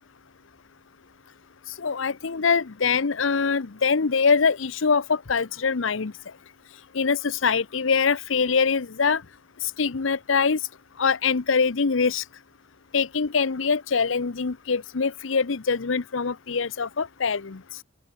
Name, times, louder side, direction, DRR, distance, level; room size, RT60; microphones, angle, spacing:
voice 1, 1.8-6.1 6.9-9.2 9.8-10.6 11.0-12.2 12.9-17.6, left 5 dB, 75° left, 0.8 m, -23 dB
open air
head